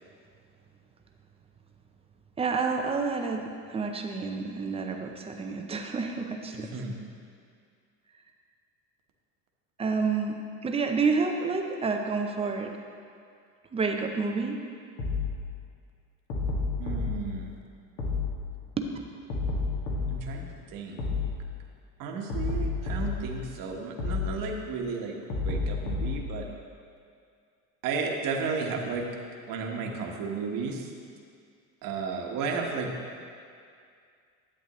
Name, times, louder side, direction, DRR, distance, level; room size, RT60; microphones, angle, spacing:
voice 1, 2.4-6.7 9.8-12.7 13.7-14.6 18.8-18.9, right 4 dB, 15° right, 3 dB, 0.5 m, -29 dB
voice 2, 6.5-7.0 16.8-17.5 20.1-20.4 20.7-21.2 22.0-26.5 27.8-29.0 29.5-30.9 31.8-32.9, right 4 dB, 50° right, 1 dB, 1.2 m, -33 dB
sound 1, 15.0-15.3 16.3-17.1 18.0-18.3 19.3-20.2 21.0-21.3 22.3-23.2 24.0-24.3 25.3-26.2, left 4 dB, 65° left, 2.0 m, -29 dB
11.0 x 8.0 x 3.0 m, 2.3 s
supercardioid pair, 130°, 41 cm